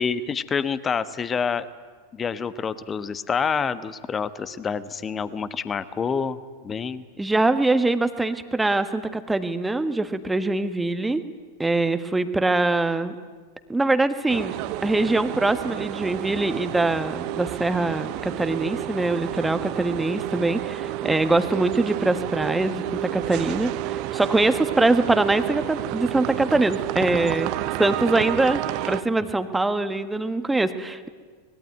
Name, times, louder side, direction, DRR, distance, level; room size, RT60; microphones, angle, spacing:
voice 1, 0.0-1.7 2.1-7.0, left 6 dB, 20° left, 14 dB, 1.2 m, -27 dB
voice 2, 7.2-11.2 11.6-13.2 13.7-14.5 14.8-27.5 27.8-31.1, right 2 dB, 5° right, 10 dB, 1.5 m, -23 dB
sound 1, 14.3-29.0, right 14 dB, 45° right, 1.0 m, -30 dB
24.5 x 21.5 x 9.4 m, 1.5 s
figure-of-eight pair, 90°, 0 cm